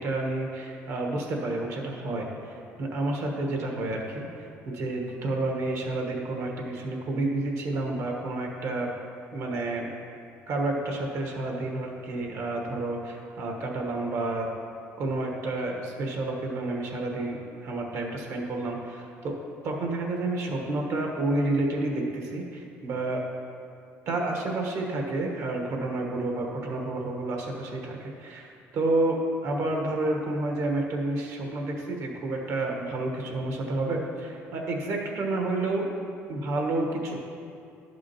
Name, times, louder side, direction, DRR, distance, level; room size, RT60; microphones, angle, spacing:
voice 1, 0.0-8.9 9.3-9.9 10.5-14.5 15.0-19.4 19.6-23.2 24.1-35.9 36.3-37.2, right 2 dB, 65° right, 1 dB, 1.3 m, -30 dB
11.0 x 6.1 x 3.0 m, 2.5 s
cardioid pair, 105°, 6 cm